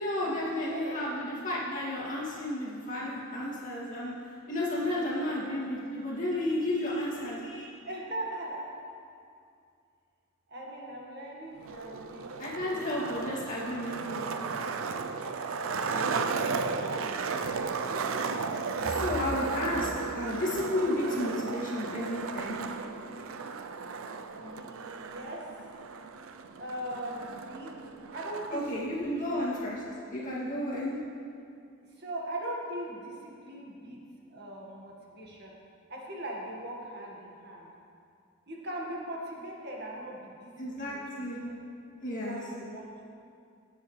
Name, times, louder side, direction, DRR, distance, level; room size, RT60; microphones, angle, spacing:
voice 1, 0.0-4.1 4.5-7.7 12.4-14.3 18.8-22.6 28.5-29.8 30.1-31.0 40.6-41.4 42.0-42.4, left 1 dB, 40° left, -6 dB, 2.4 m, -32 dB
voice 2, 0.7-1.0 4.8-5.5 7.9-8.7 10.5-12.3 12.6-12.9 15.6-17.2 21.1-21.6 24.3-25.6 26.5-27.8 28.1-29.3 31.9-35.5 35.9-37.7 38.5-41.6 42.2-43.0, right 1 dB, 55° right, -2 dB, 1.7 m, -41 dB
Skateboard, 11.6-28.6, right 5 dB, 80° right, 0.5 m, -35 dB
18.0 x 7.1 x 3.3 m, 2.4 s
head